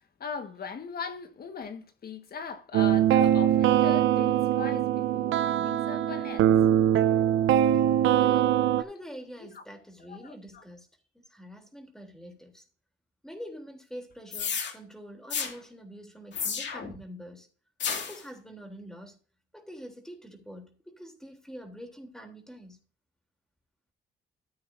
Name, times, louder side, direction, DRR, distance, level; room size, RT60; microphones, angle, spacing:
voice 1, 0.2-6.5 9.4-9.6 10.1-10.6, left 6 dB, 50° left, 1.6 m, -39 dB
sound 1, 2.7-8.8, right 11 dB, 85° right, 0.7 m, -22 dB
voice 2, 8.1-10.9 11.1-12.7 13.2-17.5 17.9-19.2 19.5-22.8, equal, 5° left, 3.2 m, -45 dB
sound 2, 14.3-14.7 15.3-15.5 16.3-17.0 17.8-18.2, left 7 dB, 65° left, 2.2 m, -31 dB
14.5 x 8.5 x 2.7 m
cardioid pair, 90°, 20 cm